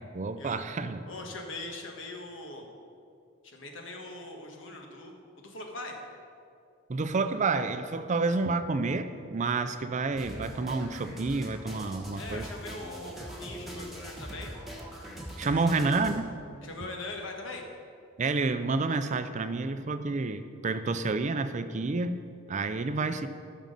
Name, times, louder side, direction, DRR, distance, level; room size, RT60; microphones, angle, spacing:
voice 1, 0.0-1.1 6.9-12.5 15.4-16.3 18.2-22.2 22.5-23.3, right 3 dB, 40° right, 10 dB, 0.5 m, -29 dB
voice 2, 1.1-2.7 3.4-6.0 12.2-14.5 15.4-16.0 16.6-17.6, left 2 dB, 70° left, 2 dB, 1.4 m, -41 dB
sound 1, 10.2-16.2, equal, ahead, 1.3 m, -42 dB
13.0 x 6.3 x 5.3 m, 2.4 s
head